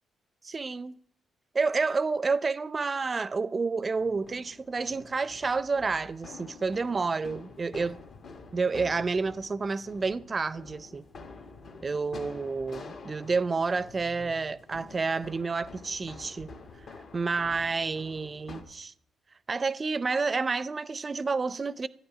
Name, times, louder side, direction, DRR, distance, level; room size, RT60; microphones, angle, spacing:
voice 1, 0.4-0.9 1.5-8.0 8.5-11.0 11.8-16.5 17.1-18.9 19.5-21.9, right 4 dB, 40° right, 0.5 m, -29 dB
sound 1, 4.0-18.6, left 4 dB, 65° left, 1.7 m, -48 dB
12.5 x 9.5 x 4.9 m
hypercardioid pair, 45°, 0 cm